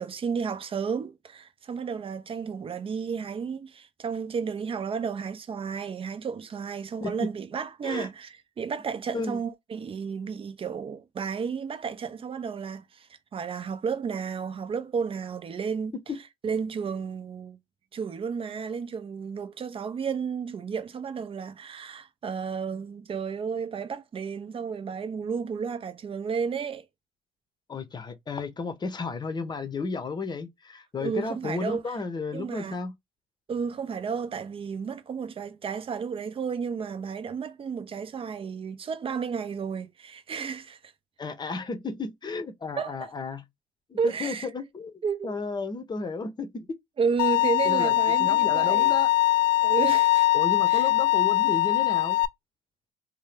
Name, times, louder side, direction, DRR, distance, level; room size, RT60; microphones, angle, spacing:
voice 1, 0.0-15.9 16.4-17.6 17.9-26.8 31.0-32.0 32.3-32.8 33.5-40.9 42.8-43.1 44.0-44.5 45.0-45.4 47.0-48.9 49.6-50.3 50.7-50.9, right 6 dB, 35° right, 0.7 m, -32 dB
voice 2, 27.7-32.9 41.2-43.4 43.9-44.9 45.2-46.8 47.6-47.9 48.2-49.1 50.3-52.2, left 4 dB, 30° left, 0.8 m, -33 dB
Bowed string instrument, 47.2-52.2, left 17 dB, 70° left, 0.4 m, -22 dB
2.7 x 2.2 x 3.3 m
supercardioid pair, 70°, 15 cm